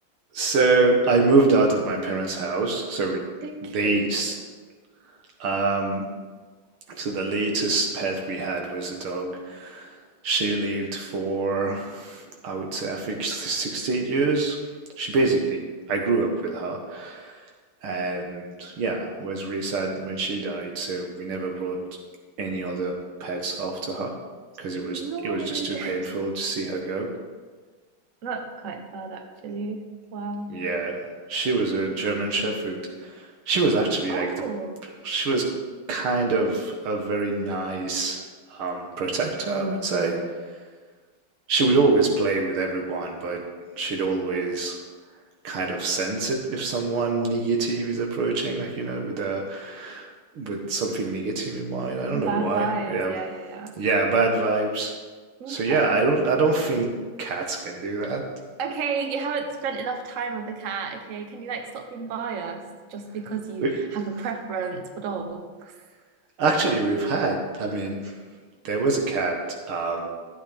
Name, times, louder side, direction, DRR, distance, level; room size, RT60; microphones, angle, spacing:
voice 1, 0.3-3.3 3.7-4.3 5.4-6.1 6.9-14.6 15.0-15.6 15.9-17.4 17.8-21.8 22.4-24.1 24.6-27.1 30.5-31.0 31.3-34.5 35.0-35.5 35.9-38.2 38.5-40.5 41.5-43.4 43.8-44.8 45.4-50.1 50.3-53.1 53.8-54.9 55.5-56.9 57.2-58.3 63.6-63.7 66.4-68.2 68.6-70.1, right 3 dB, 80° right, 2 dB, 2.2 m, -25 dB
voice 2, 3.4-4.3 24.9-26.0 28.2-30.6 34.1-34.8 52.1-53.7 55.4-56.0 58.6-63.6 63.9-65.7, right 5 dB, 50° right, 4 dB, 1.0 m, -32 dB
13.5 x 8.2 x 3.5 m, 1.4 s
omnidirectional pair, 2.3 m